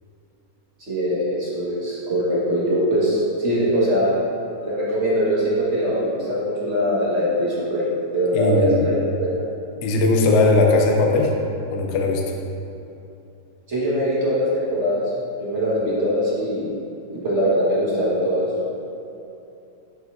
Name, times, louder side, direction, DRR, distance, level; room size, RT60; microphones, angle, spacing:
voice 1, 0.9-4.2 4.6-7.8 8.1-9.3 13.7-15.0 15.4-16.7 17.2-18.5, equal, 40° right, -8 dB, 1.7 m, -22 dB
voice 2, 8.3-8.8 9.8-11.3 11.7-12.2, left 3 dB, 80° left, 1 dB, 0.6 m, -18 dB
7.9 x 6.1 x 2.6 m, 2.8 s
omnidirectional pair, 2.0 m